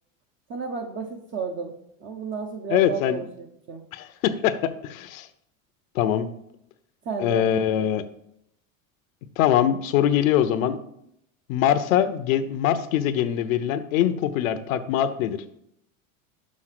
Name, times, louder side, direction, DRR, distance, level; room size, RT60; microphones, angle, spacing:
voice 1, 0.5-3.9 7.0-7.5, right 6 dB, 30° right, 5 dB, 0.7 m, -33 dB
voice 2, 2.7-3.2 3.9-5.3 5.9-6.3 7.2-8.0 9.4-10.8 11.5-15.4, left 10 dB, 80° left, 12 dB, 0.8 m, -23 dB
6.3 x 5.8 x 5.8 m, 0.77 s
supercardioid pair, 120°, 41 cm